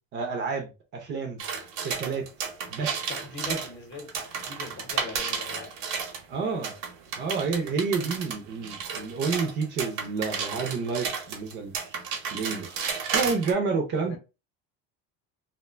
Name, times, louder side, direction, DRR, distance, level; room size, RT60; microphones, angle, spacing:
voice 1, 0.1-1.4 1.8-2.2 2.7-2.9 3.4-3.6 6.3-6.7 7.2-11.9 12.3-12.7 13.1-14.2, right 5 dB, 35° right, 0.5 m, -29 dB
sound 1, 1.4-6.2 6.6-13.5, right 6 dB, 70° right, 0.8 m, -33 dB
voice 2, 3.1-5.7 14.0-14.2, left 4 dB, 40° left, 0.8 m, -41 dB
2.5 x 2.1 x 2.4 m
cardioid pair, 170°, 31 cm